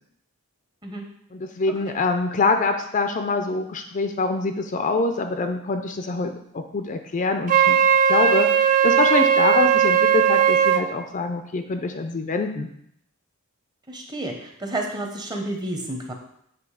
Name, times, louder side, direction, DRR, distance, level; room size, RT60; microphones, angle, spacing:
voice 1, 1.3-7.8 8.1-12.7, left 3 dB, 35° left, 6 dB, 0.4 m, -25 dB
Wind instrument woodwind instrument, 7.5-10.9, right 8 dB, 35° right, 0.4 m, -18 dB
voice 2, 13.9-16.1, right 1 dB, 20° right, 2 dB, 0.8 m, -30 dB
8.3 x 3.1 x 4.8 m, 0.71 s
head